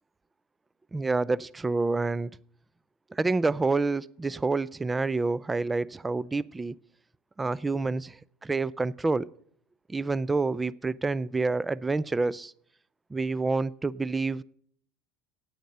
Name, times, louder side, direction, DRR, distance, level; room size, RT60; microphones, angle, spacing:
voice 1, 0.9-2.3 3.1-6.8 7.4-9.3 9.9-12.5 13.1-14.4, right 3 dB, 15° right, 22 dB, 0.4 m, -28 dB
9.1 x 8.7 x 7.6 m, 0.62 s
hypercardioid pair, 85°, 0 cm